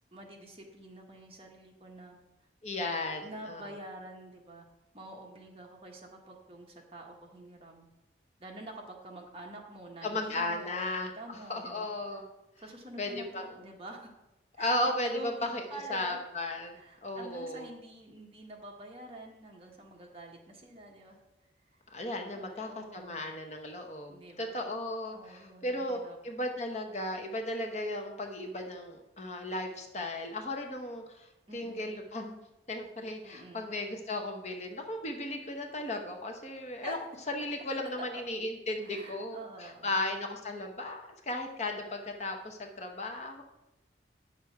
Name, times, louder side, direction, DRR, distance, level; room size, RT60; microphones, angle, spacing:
voice 1, 0.1-2.2 3.2-4.6 4.9-7.8 8.4-11.9 12.2-12.3 12.6-14.1 14.6-14.7 15.0-16.2 16.7-21.2 21.7-21.8 22.3-23.2 24.1-24.6 25.1-26.2 31.5-31.9 33.2-33.6 36.8-37.0 38.0-38.2 38.8-40.0, right 1 dB, 30° right, 0 dB, 1.3 m, -47 dB
voice 2, 2.6-3.6 10.0-12.2 13.0-13.6 14.6-15.6 15.9-17.7 21.9-31.3 31.5-32.4 32.7-37.0 37.3-43.4, left 1 dB, 40° left, 3 dB, 0.9 m, -35 dB
8.9 x 6.5 x 4.7 m, 0.95 s
head